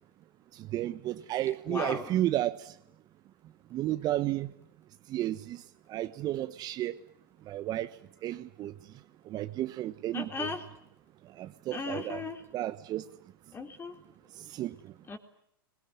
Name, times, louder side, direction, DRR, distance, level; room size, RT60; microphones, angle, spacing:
voice 1, 0.5-2.7 3.7-4.5 5.1-5.6 5.9-7.0 7.5-7.9 8.2-8.7 9.3-10.5 11.4-12.2 12.5-13.1 14.4-14.9, right 14 dB, 35° right, 11 dB, 1.2 m, -32 dB
voice 2, 1.7-2.2 10.1-10.6 11.7-12.4 13.5-14.0 15.1-15.2, left 4 dB, 20° left, 6 dB, 3.9 m, -36 dB
27.0 x 21.5 x 9.3 m, 0.74 s
hypercardioid pair, 105°, 12 cm